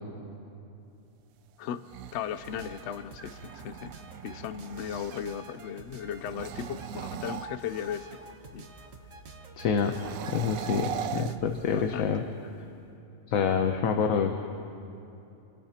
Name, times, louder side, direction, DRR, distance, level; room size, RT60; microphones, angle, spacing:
sound 1, 1.7-5.4 6.2-8.2 9.8-12.1, right 9 dB, 90° right, 1.0 m, -40 dB
voice 1, 2.1-3.9 4.2-8.1 8.5-8.7 11.1-12.1, left 8 dB, 65° left, 13 dB, 0.8 m, -37 dB
sound 2, 2.4-11.4, right 2 dB, 70° right, 1.5 m, -48 dB
voice 2, 9.6-9.9 10.3-12.2 13.3-14.6, left 6 dB, 85° left, 5 dB, 1.2 m, -27 dB
28.0 x 18.0 x 2.9 m, 2.8 s
omnidirectional pair, 1.4 m